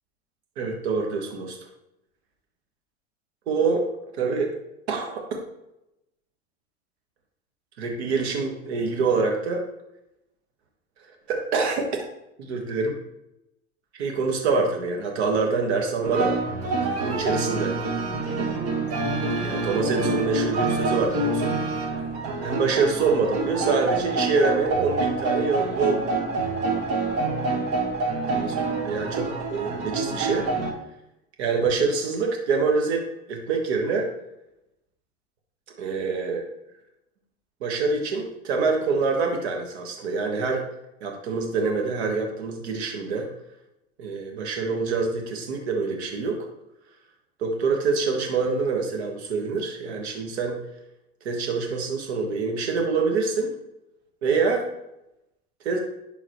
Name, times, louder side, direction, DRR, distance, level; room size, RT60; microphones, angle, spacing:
voice 1, 0.6-1.6 3.5-3.8 4.1-4.5 4.9-5.3 7.8-9.6 11.3-12.0 12.4-13.0 13.9-16.3 17.0-17.8 19.4-21.6 22.4-26.5 28.3-28.6 28.8-30.5 31.4-33.0 33.3-34.1 35.8-36.4 37.6-40.6 41.0-43.3 44.0-46.5 47.4-50.6 51.2-53.5 54.2-54.7 55.6-55.8, right 4 dB, 90° right, 2 dB, 1.4 m, -25 dB
sound 1, 16.0-30.7, right 3 dB, 50° right, 1.6 m, -27 dB
11.0 x 3.9 x 3.0 m, 0.86 s
supercardioid pair, 110°, 32 cm